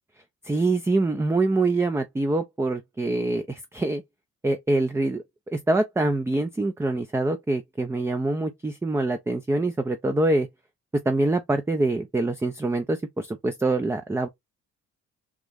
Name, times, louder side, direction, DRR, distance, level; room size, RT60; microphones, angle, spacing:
voice 1, 0.4-4.0 4.4-5.2 5.5-10.5 10.9-14.3, right 2 dB, 10° right, 0.4 m, -25 dB
3.5 x 2.1 x 3.3 m
cardioid pair, 90°, 30 cm